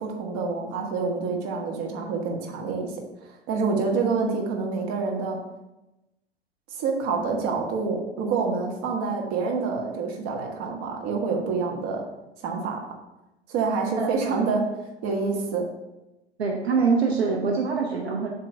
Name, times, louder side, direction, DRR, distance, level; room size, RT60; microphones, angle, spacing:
voice 1, 0.0-2.9 3.5-5.4 6.7-12.0 12.4-12.8 13.5-14.6 15.0-15.6, right 4 dB, 45° right, 1 dB, 1.4 m, -27 dB
voice 2, 16.4-18.3, right 5 dB, 70° right, 0 dB, 1.0 m, -24 dB
7.6 x 3.1 x 5.3 m, 0.96 s
figure-of-eight pair, 85°, 32 cm